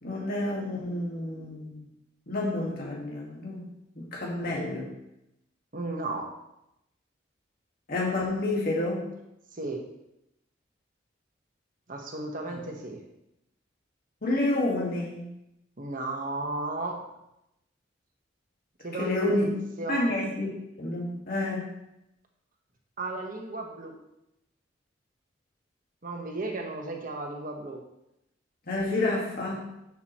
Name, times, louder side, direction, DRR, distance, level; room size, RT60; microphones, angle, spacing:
voice 1, 0.0-1.8 2.3-3.6 4.0-4.9 7.9-9.1 14.2-15.3 19.0-19.5 19.9-20.5 20.8-21.7 28.7-29.7, left 2 dB, 50° left, -4 dB, 1.8 m, -29 dB
voice 2, 5.7-6.3 9.5-9.9 11.9-13.0 15.8-17.1 18.8-19.5 19.8-20.1 23.0-24.0 26.0-27.8, right 2 dB, 45° right, 2 dB, 1.2 m, -34 dB
10.5 x 5.9 x 3.0 m, 0.86 s
head